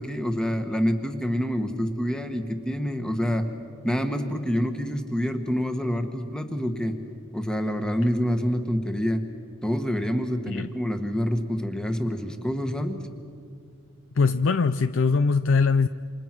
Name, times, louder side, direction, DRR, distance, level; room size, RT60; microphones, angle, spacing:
voice 1, 0.0-3.4 3.8-7.0 7.3-9.2 9.6-13.0, equal, 5° left, 6 dB, 1.4 m, -27 dB
voice 2, 14.2-15.9, left 4 dB, 60° left, 11 dB, 0.5 m, -21 dB
28.0 x 26.0 x 6.1 m, 2.3 s
head